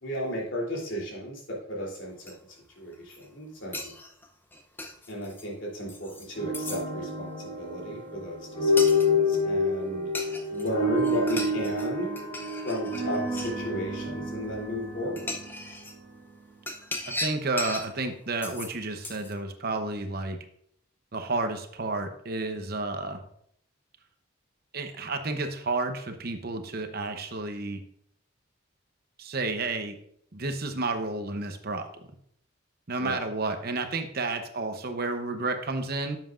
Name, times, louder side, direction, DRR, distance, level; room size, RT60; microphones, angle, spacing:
voice 1, 0.0-2.3 2.8-3.9 5.1-10.1 10.5-12.1 12.6-15.4 33.0-33.2, left 1 dB, 65° left, -3 dB, 3.2 m, -34 dB
sound 1, 2.3-2.4 2.9-3.3 3.7-5.5 5.9-6.3 6.5-6.8 8.8-9.1 10.1-10.7 11.0-11.9 12.2-13.6 14.5-14.6 15.2-16.0 16.7-17.9 18.4-18.7 19.0-19.3, left 2 dB, 10° left, 0.6 m, -37 dB
sound 2, 6.3-16.4, left 2 dB, 35° left, 3.8 m, -29 dB
voice 2, 17.1-20.4 21.1-23.2 24.7-27.8 29.2-30.0 30.3-31.9 32.9-36.2, right 3 dB, 50° right, 7 dB, 0.8 m, -31 dB
10.5 x 7.5 x 2.5 m, 0.67 s
head